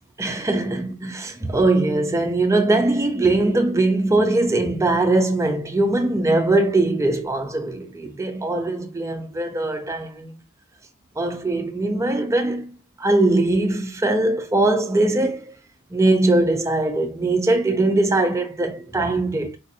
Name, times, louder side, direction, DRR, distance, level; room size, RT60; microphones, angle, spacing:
voice 1, 0.2-10.3 11.2-12.7 13.0-15.5 15.9-19.6, right 2 dB, 15° right, 0.4 m, -21 dB
4.1 x 2.5 x 2.6 m
head